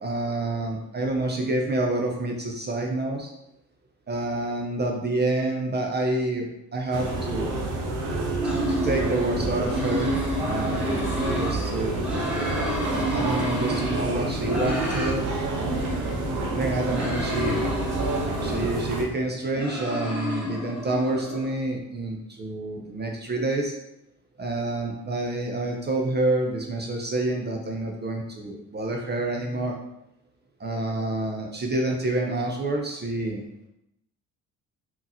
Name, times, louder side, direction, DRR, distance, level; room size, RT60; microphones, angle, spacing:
voice 1, 0.0-3.3 4.1-6.4 6.7-7.6 8.4-10.1 10.4-11.0 11.3-12.0 12.9-15.2 15.5-16.1 16.5-17.6 18.4-23.7 24.4-29.8 30.6-33.4, right 2 dB, 25° right, 0 dB, 0.6 m, -28 dB
sound 1, 6.9-19.0, right 2 dB, 80° right, 0.7 m, -28 dB
sound 2, 8.4-11.6 11.9-15.2 15.5-18.8 19.3-21.5, equal, 5° right, 1.0 m, -31 dB
3.6 x 2.9 x 2.6 m, 0.83 s
hypercardioid pair, 55°, 40 cm